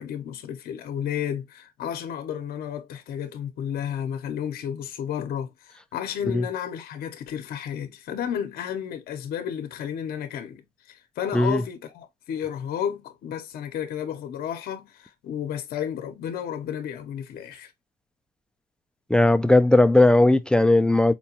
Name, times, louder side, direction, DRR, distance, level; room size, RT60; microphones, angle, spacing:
voice 1, 0.0-17.7, left 9 dB, 65° left, 0.7 m, -32 dB
voice 2, 19.1-21.1, left 2 dB, 5° left, 0.3 m, -17 dB
4.4 x 2.2 x 2.8 m
cardioid pair, 110°, 17 cm